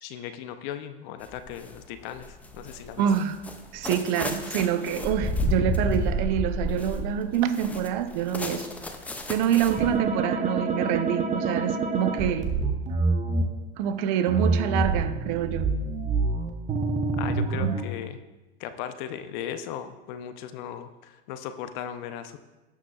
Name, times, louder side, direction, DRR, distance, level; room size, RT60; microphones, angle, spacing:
voice 1, 0.0-3.1 17.2-18.2 18.6-22.4, left 9 dB, 45° left, 0.7 m, -37 dB
sound 1, 1.2-1.8 2.2-10.0, equal, 5° left, 0.4 m, -31 dB
voice 2, 3.0-3.4 3.7-8.7 9.3-12.5 13.8-15.7 17.6-17.8, right 9 dB, 45° right, 0.6 m, -26 dB
sound 2, 9.7-13.4 14.3-17.8, right 3 dB, 25° right, 0.9 m, -26 dB
17.5 x 6.0 x 2.4 m
hypercardioid pair, 120°, 33 cm